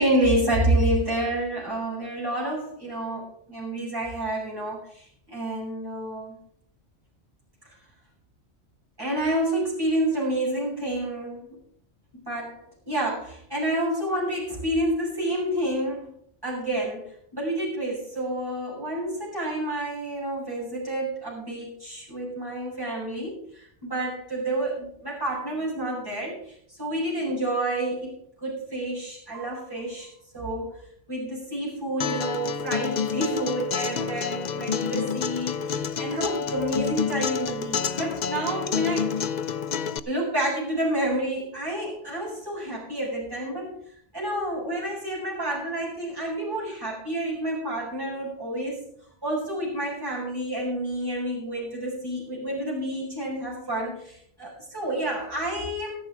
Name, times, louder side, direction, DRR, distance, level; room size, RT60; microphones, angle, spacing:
voice 1, 0.0-6.4 9.0-11.5 12.2-16.1 16.4-28.1 28.4-30.8 31.1-39.3 40.0-43.8 44.1-48.8 49.2-56.0, right 1 dB, 20° right, -6 dB, 6.7 m, -29 dB
Acoustic guitar, 32.0-40.0, left 7 dB, 50° left, 0.6 m, -28 dB
13.0 x 11.0 x 4.8 m, 0.64 s
omnidirectional pair, 1.1 m